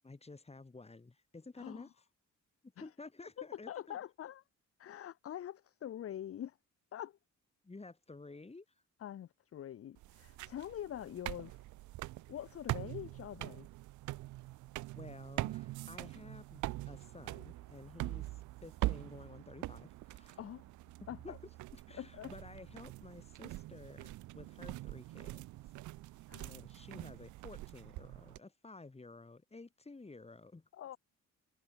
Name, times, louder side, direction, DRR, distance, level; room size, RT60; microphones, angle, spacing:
voice 1, 0.0-2.0 2.6-4.0 7.6-8.8 14.9-20.4 21.0-21.4 21.7-25.4 26.1-30.7, left 3 dB, 20° left, 5.0 m, -53 dB
voice 2, 1.6-1.9 2.8-2.9 3.4-4.4 4.8-6.6 6.9-7.2 9.0-11.6 12.3-13.7 20.4-20.6 21.1-21.4 22.0-22.3 26.3-26.5 30.7-31.0, left 10 dB, 50° left, 0.8 m, -45 dB
sound 1, 10.0-28.4, right 18 dB, 75° right, 0.5 m, -43 dB
cardioid pair, 90°, 30 cm